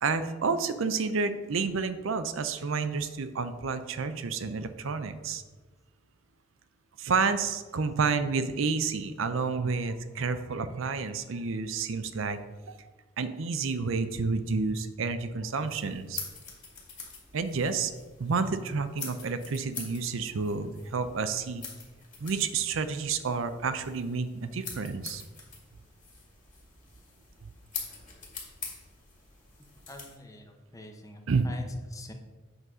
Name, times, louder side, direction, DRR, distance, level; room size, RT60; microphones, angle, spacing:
voice 1, 0.0-5.4 7.0-12.4 12.7-12.8 13.2-16.2 17.3-17.9 18.2-21.6 22.2-25.2 27.4-27.5 31.3-31.5, right 4 dB, 75° right, 10 dB, 0.5 m, -30 dB
sound 1, 15.6-30.2, left 5 dB, 40° left, 2.2 m, -45 dB
voice 2, 29.9-32.1, left 1 dB, 15° left, 4 dB, 0.8 m, -46 dB
8.0 x 4.0 x 6.1 m, 1.3 s
head